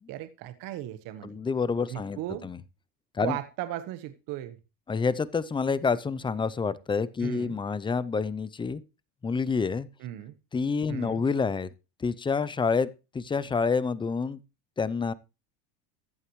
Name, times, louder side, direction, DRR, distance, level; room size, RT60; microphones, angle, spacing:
voice 1, 0.1-1.4 1.9-2.5 3.2-4.6 7.2-7.6 10.0-10.3 10.9-11.2, right 13 dB, 55° right, 1.2 m, -36 dB
voice 2, 1.2-2.6 3.1-3.4 4.9-8.8 9.2-9.9 10.5-11.7 12.0-12.9 13.1-14.4 14.8-15.1, left 5 dB, 10° left, 0.5 m, -28 dB
14.5 x 11.5 x 3.1 m
supercardioid pair, 130°, 40 cm